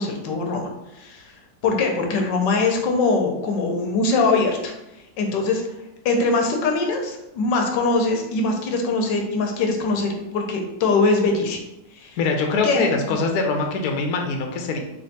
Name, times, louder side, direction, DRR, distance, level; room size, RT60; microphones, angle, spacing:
voice 1, 0.0-1.4 1.6-4.7 5.2-5.6 6.0-11.6 12.0-12.2 12.6-12.8, left 3 dB, 85° left, 3 dB, 1.4 m, -22 dB
voice 2, 12.2-14.8, left 4 dB, 70° left, 3 dB, 1.1 m, -23 dB
3.4 x 3.1 x 4.0 m, 0.90 s
omnidirectional pair, 1.9 m